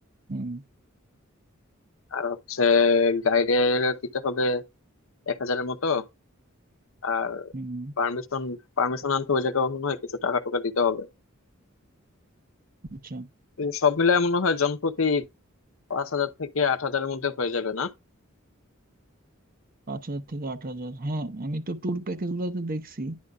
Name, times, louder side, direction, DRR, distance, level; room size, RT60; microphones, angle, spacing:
voice 1, 0.3-0.6 7.5-7.9 12.9-13.3 19.9-23.2, right 2 dB, 45° right, 0.8 m, -32 dB
voice 2, 2.1-4.6 5.3-6.0 7.0-7.5 8.0-11.1 13.6-15.2 15.9-17.9, left 4 dB, 70° left, 0.8 m, -25 dB
10.5 x 5.2 x 2.3 m
head